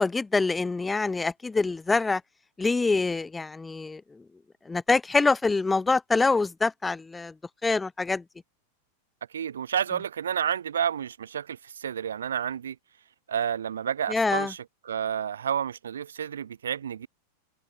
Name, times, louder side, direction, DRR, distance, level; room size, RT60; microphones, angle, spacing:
voice 1, 0.0-2.2 2.6-4.0 4.7-7.3 7.6-8.2 14.1-14.5, left 3 dB, 10° left, 1.9 m, -25 dB
voice 2, 9.3-12.7 13.3-17.1, right 8 dB, 65° right, 1.3 m, -30 dB
open air
figure-of-eight pair, 90°, 0 cm